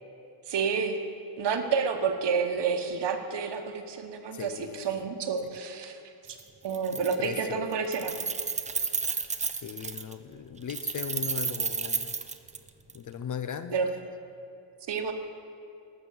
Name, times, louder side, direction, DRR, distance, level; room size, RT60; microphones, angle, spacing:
voice 1, 0.5-1.0 1.4-6.0 6.6-8.1 13.7-13.9 14.9-15.1, right 6 dB, 55° right, 6 dB, 1.2 m, -29 dB
voice 2, 4.3-5.0 7.0-7.7 9.5-12.1 12.9-13.9, left 7 dB, 40° left, 10 dB, 0.5 m, -38 dB
Keys jangling, 6.3-6.4 6.7-7.5 7.7-10.1 10.7-13.0, right 5 dB, 15° right, 0.4 m, -32 dB
12.5 x 6.1 x 7.9 m, 2.7 s
cardioid pair, 110°, 49 cm